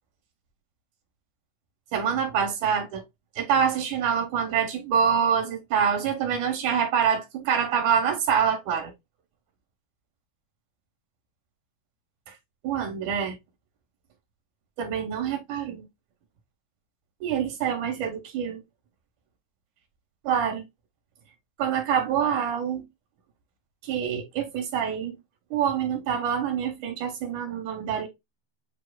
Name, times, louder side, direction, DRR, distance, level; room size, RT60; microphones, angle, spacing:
voice 1, 1.9-3.0 3.4-8.9 12.6-13.4 14.8-15.8 17.2-18.6 20.2-20.6 21.6-22.8 23.8-25.2 25.5-28.1, right 7 dB, 70° right, 2.4 m, -26 dB
7.5 x 3.1 x 2.3 m
omnidirectional pair, 4.0 m